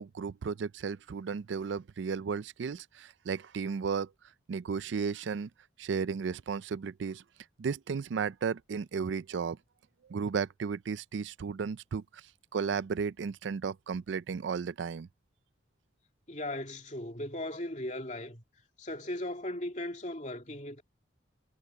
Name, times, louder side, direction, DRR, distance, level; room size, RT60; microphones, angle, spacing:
voice 1, 0.0-4.1 4.5-5.5 5.8-7.2 7.6-9.6 10.1-12.2 12.5-15.1, right 6 dB, 80° right, 0.4 m, -34 dB
voice 2, 16.3-18.4 18.8-20.8, left 1 dB, 40° left, 2.7 m, -37 dB
head